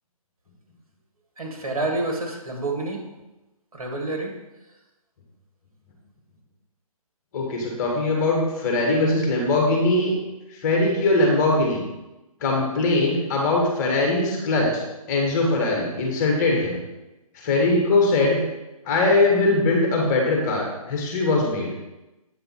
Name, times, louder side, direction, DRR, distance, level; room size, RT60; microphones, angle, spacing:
voice 1, 1.4-3.0 3.7-4.3, right 2 dB, 70° right, 0 dB, 2.3 m, -28 dB
voice 2, 7.3-10.1 10.6-11.8 12.4-14.7 15.1-16.8 17.4-18.4 18.9-21.7, left 2 dB, 30° left, 0 dB, 1.9 m, -21 dB
8.7 x 5.1 x 4.7 m, 1.0 s
figure-of-eight pair, 150°, 19 cm